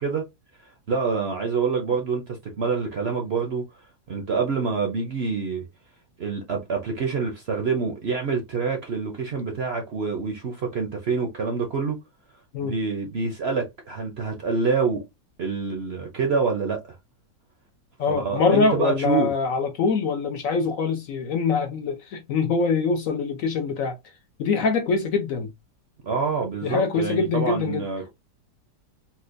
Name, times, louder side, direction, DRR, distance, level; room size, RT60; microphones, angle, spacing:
voice 1, 0.9-3.6 4.1-5.7 6.2-12.0 12.6-15.0 15.4-16.8 18.1-19.3 26.0-28.1, right 5 dB, 55° right, 0.7 m, -26 dB
voice 2, 18.0-24.0 24.4-25.5 26.6-27.9, left 4 dB, 65° left, 0.9 m, -24 dB
4.2 x 2.3 x 2.5 m
omnidirectional pair, 1.8 m